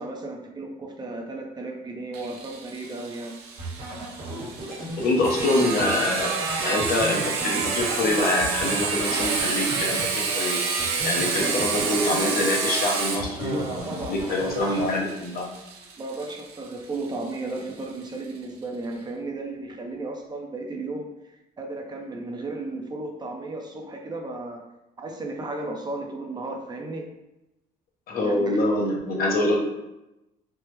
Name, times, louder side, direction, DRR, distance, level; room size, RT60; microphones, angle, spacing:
voice 1, 0.0-3.3 11.2-11.6 13.4-14.8 16.0-21.1 21.6-24.6 25.0-27.1 28.2-28.6, right 2 dB, 25° right, 2 dB, 0.5 m, -34 dB
Sawing, 2.1-17.6, right 5 dB, 80° right, 0.6 m, -29 dB
sound 1, 3.6-10.4 10.8-12.8 13.2-15.2, right 1 dB, 55° right, 1.2 m, -36 dB
voice 2, 5.0-6.3 6.6-10.6 11.0-15.5 28.1-29.6, left 2 dB, 60° left, 0 dB, 0.7 m, -25 dB
3.3 x 2.0 x 3.0 m, 0.94 s
cardioid pair, 110°, 17 cm